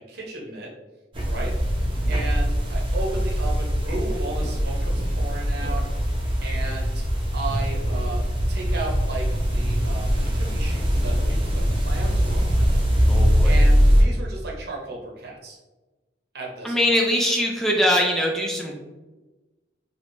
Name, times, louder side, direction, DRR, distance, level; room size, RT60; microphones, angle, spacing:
voice 1, 0.1-0.7 1.3-1.5 2.1-5.8 6.4-7.0 7.3-8.2 8.5-10.1 10.4-12.7 13.4-15.6 16.3-17.0, right 2 dB, 60° right, -2 dB, 0.8 m, -34 dB
sound 1, 1.1-14.0, equal, 30° right, 0.8 m, -22 dB
voice 2, 13.1-13.5 16.6-18.7, equal, ahead, -1 dB, 0.4 m, -22 dB
3.5 x 2.9 x 2.6 m, 1.2 s
head